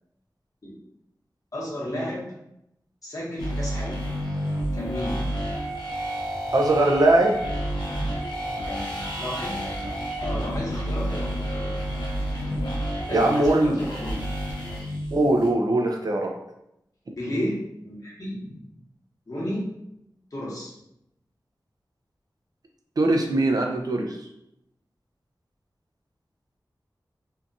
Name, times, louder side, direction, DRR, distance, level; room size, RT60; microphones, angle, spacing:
voice 1, 1.5-2.2 3.0-4.0 4.7-5.2 9.2-9.5 10.2-11.8 13.1-14.2 17.1-18.7 19.3-19.7 20.3-20.7, equal, 50° left, -5 dB, 1.0 m, -32 dB
sound 1, 3.4-15.5, equal, 85° left, 0.6 m, -30 dB
voice 2, 6.5-7.4 13.1-13.8 15.1-16.3 23.0-24.2, right 2 dB, 55° right, 2 dB, 0.4 m, -21 dB
2.7 x 2.3 x 2.6 m, 0.82 s
wide cardioid pair, 60°, 8 cm